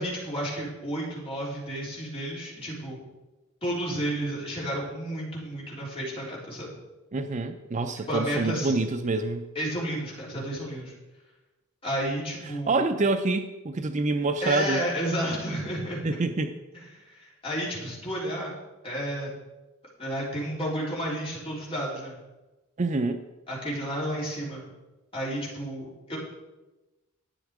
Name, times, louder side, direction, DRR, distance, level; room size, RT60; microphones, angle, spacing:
voice 1, 0.0-3.0 3.6-6.7 8.1-8.7 9.6-10.9 11.8-12.8 14.4-16.2 16.7-18.5 18.8-19.3 20.0-22.1 23.5-24.6 25.1-26.2, equal, 25° left, -5 dB, 3.8 m, -31 dB
voice 2, 7.1-9.5 12.7-14.8 16.0-16.5 22.8-23.2, right 3 dB, 35° right, 8 dB, 0.5 m, -26 dB
12.0 x 8.9 x 4.8 m, 1.1 s
head